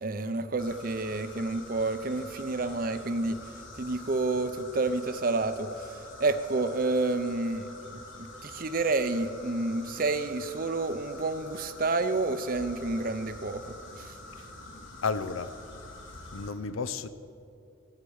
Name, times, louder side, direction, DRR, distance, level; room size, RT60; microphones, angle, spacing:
voice 1, 0.0-3.4 3.8-14.1, right 3 dB, 45° right, 11 dB, 0.6 m, -30 dB
sound 1, 0.6-16.5, left 2 dB, 70° left, 1.8 m, -47 dB
voice 2, 15.0-15.5 16.3-17.1, left 5 dB, 85° left, 13 dB, 0.6 m, -32 dB
16.0 x 8.4 x 6.4 m, 2.7 s
head